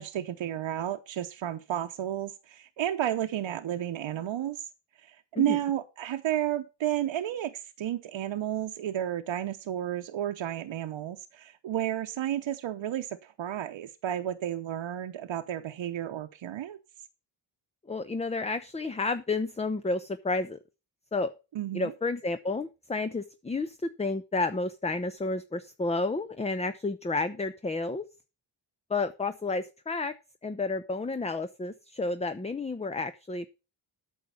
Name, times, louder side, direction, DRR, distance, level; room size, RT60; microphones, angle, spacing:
voice 1, 0.0-4.6 5.0-16.8 21.5-21.9, right 11 dB, 80° right, 0.9 m, -32 dB
voice 2, 17.9-20.6 21.1-21.3 21.7-28.0 28.9-30.1 30.4-33.5, left 3 dB, 15° left, 0.6 m, -31 dB
9.2 x 6.4 x 6.9 m
cardioid pair, 85°, 46 cm